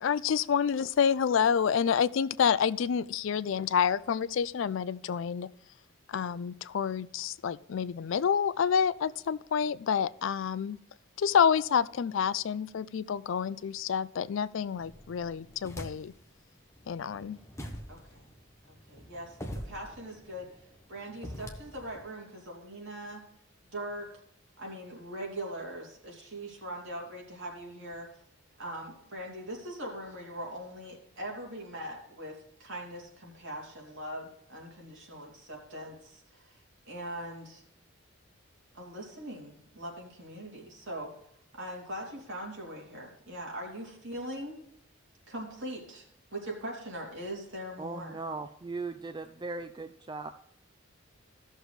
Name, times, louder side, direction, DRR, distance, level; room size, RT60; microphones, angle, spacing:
voice 1, 0.0-5.5 6.1-10.8 11.2-16.1 16.9-17.4, left 7 dB, 65° left, 0.4 m, -28 dB
sound 1, 14.8-16.3 16.7-22.0, equal, 15° left, 0.9 m, -44 dB
voice 2, 17.9-18.2 18.7-20.5 20.9-23.3 23.7-24.1 24.6-28.1 28.6-36.6 36.8-37.6 38.7-41.2 41.5-44.6 45.3-48.2, right 1 dB, 70° right, 2.8 m, -41 dB
voice 3, 47.8-50.3, right 3 dB, 20° right, 0.3 m, -38 dB
15.0 x 6.5 x 3.2 m
head